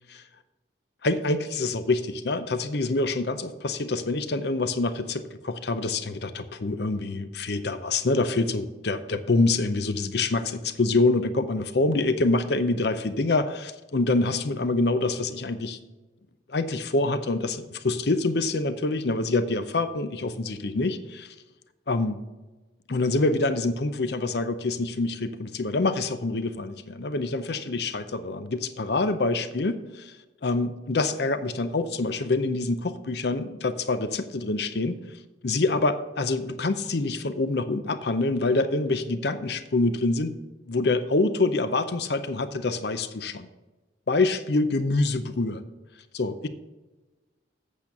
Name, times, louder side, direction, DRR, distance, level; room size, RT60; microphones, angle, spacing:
voice 1, 1.0-15.8 16.5-21.3 21.9-22.2 22.9-30.1 30.4-35.0 35.4-40.3 40.7-43.5 44.1-45.6 46.1-46.5, left 2 dB, 60° left, 11 dB, 0.6 m, -26 dB
8.3 x 7.0 x 5.9 m, 1.1 s
head